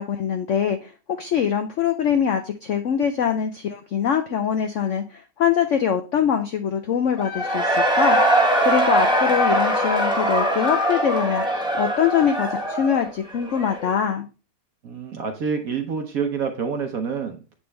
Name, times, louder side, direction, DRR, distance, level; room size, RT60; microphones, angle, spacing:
voice 1, 0.0-8.2 8.6-11.4 11.7-14.3, left 8 dB, 80° left, 7 dB, 0.6 m, -23 dB
Cheering / Crowd, 7.2-13.9, right 1 dB, 5° right, 0.8 m, -21 dB
voice 2, 14.8-17.5, right 6 dB, 60° right, 5 dB, 1.1 m, -27 dB
8.7 x 3.7 x 3.2 m, 0.32 s
omnidirectional pair, 2.0 m